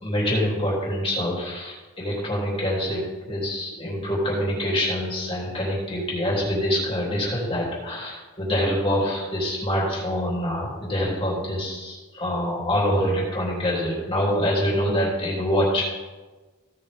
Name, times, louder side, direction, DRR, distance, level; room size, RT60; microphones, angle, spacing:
voice 1, 0.0-15.9, equal, 25° left, -5 dB, 3.3 m, -25 dB
16.0 x 6.5 x 3.7 m, 1.3 s
head